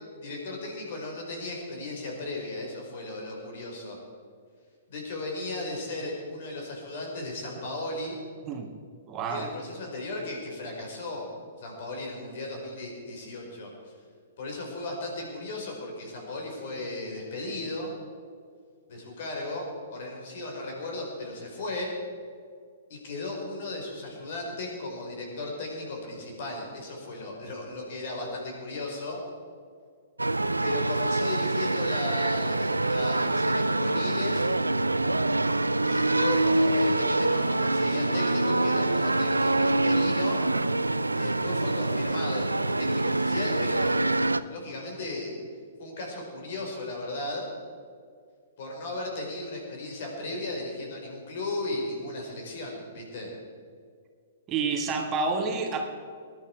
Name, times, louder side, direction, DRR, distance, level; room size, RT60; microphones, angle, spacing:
voice 1, 0.0-4.0 4.9-8.2 9.3-11.3 11.6-13.9 14.4-17.9 18.9-21.9 22.9-29.2 30.6-34.5 35.8-40.4 41.1-44.0 44.5-45.4 45.8-47.5 48.6-53.3, left 2 dB, 50° left, 0 dB, 4.9 m, -36 dB
voice 2, 9.1-9.5 54.5-55.9, right 4 dB, 25° right, 3 dB, 1.8 m, -29 dB
sound 1, 30.2-44.4, right 2 dB, 85° right, 0.5 m, -25 dB
20.5 x 11.0 x 4.7 m, 2.1 s
figure-of-eight pair, 115°, 0 cm